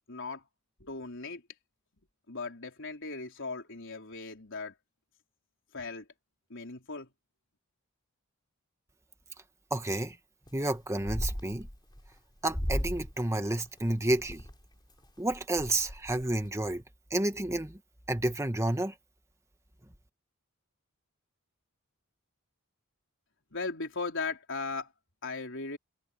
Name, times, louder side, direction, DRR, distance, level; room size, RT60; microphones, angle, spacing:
voice 1, 0.1-0.4 0.8-1.4 2.3-4.7 5.7-6.1 6.5-7.1 23.5-24.9 25.2-25.8, left 4 dB, 60° left, 4.2 m, -37 dB
voice 2, 9.7-10.1 10.5-11.7 12.4-14.4 15.2-16.8 17.1-17.8 18.1-18.9, right 1 dB, 15° right, 1.7 m, -30 dB
sound 1, 10.5-10.7 11.0-12.1 12.5-13.1 13.5-14.5 15.0-15.1 15.3-16.5, equal, 20° left, 3.2 m, -35 dB
head